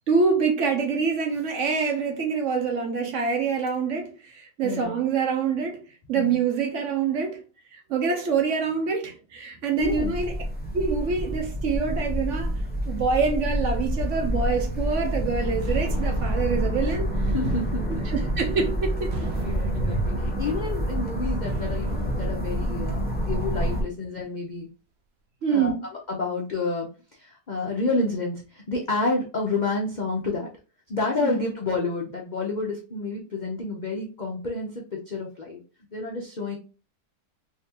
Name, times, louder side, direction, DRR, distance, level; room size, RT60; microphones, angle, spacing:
voice 1, 0.1-5.8 6.1-7.4 7.7-10.4 10.7-12.6 12.9-17.3 17.9-19.3 19.8-20.0 25.4-25.9 31.2-31.4, right 5 dB, 60° right, 0.9 m, -26 dB
voice 2, 4.6-5.0 6.1-6.4 9.8-10.1 17.3-18.1 18.5-18.6 19.4-24.7 25.5-25.7 26.1-26.9 27.1-30.5 30.9-35.6 35.9-36.6, left 3 dB, 85° left, 0.4 m, -29 dB
sound 1, 9.8-23.8, equal, 10° left, 0.4 m, -28 dB
sound 2, 15.6-23.4, right 5 dB, 85° right, 0.5 m, -41 dB
3.6 x 2.8 x 2.8 m
omnidirectional pair, 1.7 m